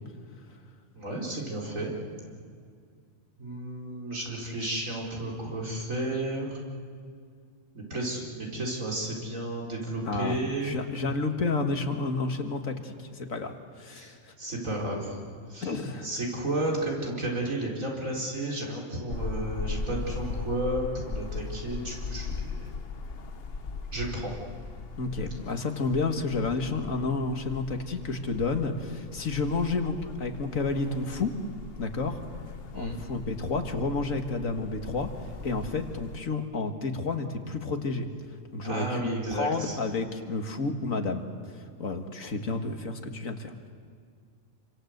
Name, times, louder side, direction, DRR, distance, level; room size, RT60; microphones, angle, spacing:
voice 1, 0.9-1.9 3.4-6.6 7.7-10.8 13.9-15.2 15.5-15.7 16.0-22.5 23.9-24.3 32.7-33.0 38.6-39.8, right 1 dB, 80° right, -2 dB, 5.1 m, -32 dB
voice 2, 10.0-14.3 15.6-16.1 25.0-31.3 31.8-32.2 32.7-35.1 35.4-38.1 38.5-43.5, left 3 dB, 80° left, 5 dB, 2.2 m, -30 dB
sound 1, 19.1-36.2, left 4 dB, 50° left, 1.2 m, -39 dB
28.0 x 25.5 x 8.1 m, 2.1 s
omnidirectional pair, 1.4 m